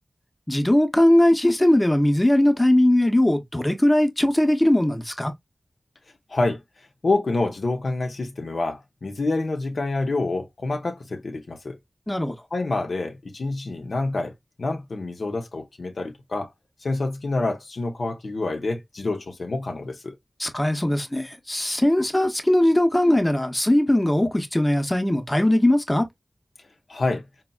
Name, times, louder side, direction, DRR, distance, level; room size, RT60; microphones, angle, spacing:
voice 1, 0.5-5.3 12.1-12.4 20.4-26.1, left 1 dB, 20° left, 0.6 m, -20 dB
voice 2, 6.3-6.6 7.0-11.8 12.5-14.3 14.6-16.5 16.8-20.1 26.9-27.3, left 2 dB, 75° left, 0.6 m, -27 dB
4.1 x 2.0 x 2.2 m
wide cardioid pair, 55°, 0 cm